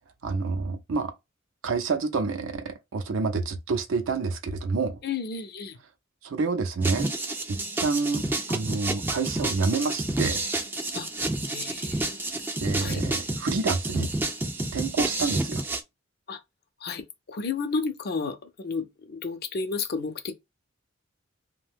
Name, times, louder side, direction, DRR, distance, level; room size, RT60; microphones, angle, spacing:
voice 1, 0.2-1.1 1.6-5.0 6.2-7.1 7.5-10.4 12.6-14.1 14.7-15.6, right 4 dB, 70° right, 0.5 m, -28 dB
voice 2, 5.0-5.8 10.9-11.1 11.5-12.2 12.8-13.0 16.3-16.4 16.8-17.0 17.3-20.3, left 4 dB, 50° left, 0.5 m, -32 dB
sound 1, 6.8-15.8, right 2 dB, 10° right, 0.3 m, -29 dB
2.6 x 2.2 x 3.4 m
head